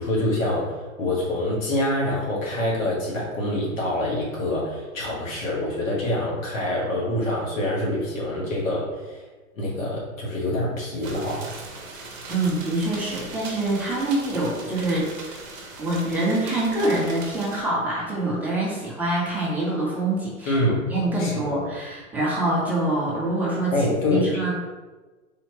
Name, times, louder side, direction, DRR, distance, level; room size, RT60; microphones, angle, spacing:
voice 1, 0.0-9.2 9.5-11.6 20.4-20.8 21.2-21.6 23.7-24.5, left 1 dB, 65° left, -4 dB, 1.4 m, -26 dB
sound 1, 11.0-17.6, right 3 dB, 35° right, 0.8 m, -39 dB
voice 2, 12.3-15.4 15.8-20.6 20.9-24.5, right 2 dB, 5° right, -6 dB, 0.4 m, -25 dB
3.5 x 2.8 x 2.8 m, 1.3 s
figure-of-eight pair, 105°, 42 cm